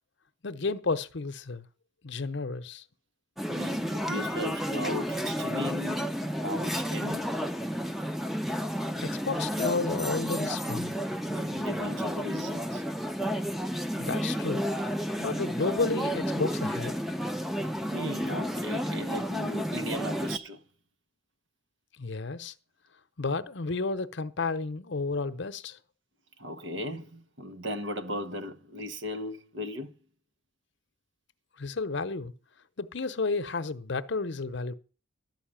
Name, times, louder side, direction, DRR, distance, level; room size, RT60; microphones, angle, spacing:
voice 1, 0.4-1.7 2.0-2.8 9.0-11.0 14.0-14.6 15.2-17.0 22.0-22.5 23.2-25.8 31.6-32.3 32.8-34.7, left 3 dB, 65° left, 0.8 m, -32 dB
sound 1, 3.4-20.4, equal, ahead, 0.7 m, -31 dB
voice 2, 3.5-7.3 11.3-12.8 17.9-20.6 26.4-29.9, left 1 dB, 70° right, 1.2 m, -37 dB
12.5 x 5.7 x 8.9 m
head